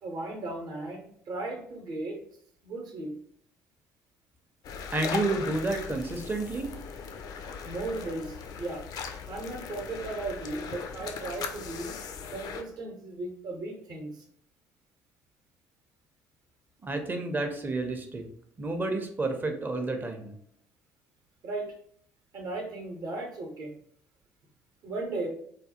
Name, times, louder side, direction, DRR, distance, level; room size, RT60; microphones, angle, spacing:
voice 1, 0.0-2.2 2.6-3.1 7.6-8.8 9.3-11.9 12.3-14.2 21.4-21.7 22.3-23.7 24.8-25.3, right 2 dB, 55° right, 2 dB, 0.8 m, -36 dB
sound 1, 4.6-12.6, left 6 dB, 50° left, 0.4 m, -38 dB
voice 2, 4.9-6.7 16.8-18.2 18.6-20.3, right 2 dB, 20° right, 5 dB, 0.6 m, -30 dB
3.2 x 2.2 x 2.8 m, 0.63 s
figure-of-eight pair, 50°, 9 cm